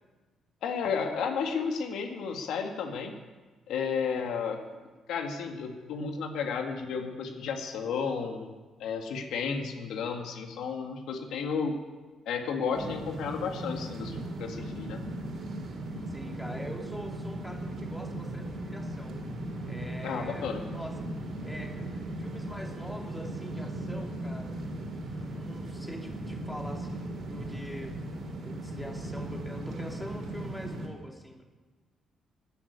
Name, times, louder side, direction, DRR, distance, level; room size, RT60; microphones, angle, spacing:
voice 1, 0.6-3.2 3.7-4.6 5.1-11.8 12.3-15.0 20.0-20.6, left 6 dB, 80° left, 4 dB, 1.8 m, -32 dB
sound 1, 12.7-30.9, right 1 dB, 60° right, 3.7 m, -37 dB
voice 2, 16.1-19.1 19.7-20.9 21.4-24.7 25.3-27.9 28.4-31.4, equal, 5° left, 1 dB, 2.6 m, -44 dB
13.5 x 9.7 x 9.6 m, 1.3 s
cardioid pair, 90°, 0 cm